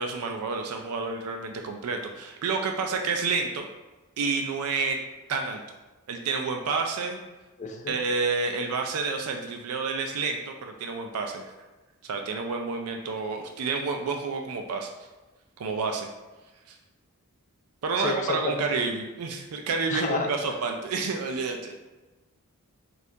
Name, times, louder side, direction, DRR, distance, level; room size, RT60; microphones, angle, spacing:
voice 1, 0.0-3.7 4.2-5.0 5.3-5.6 6.1-7.2 7.9-11.4 12.0-14.9 15.6-16.1 16.7-16.8 17.8-21.7, right 4 dB, 85° right, 3 dB, 0.4 m, -29 dB
voice 2, 7.6-8.0 18.0-18.8 19.9-20.3, left 3 dB, 35° left, 3 dB, 0.3 m, -30 dB
4.3 x 2.4 x 2.7 m, 1.2 s
head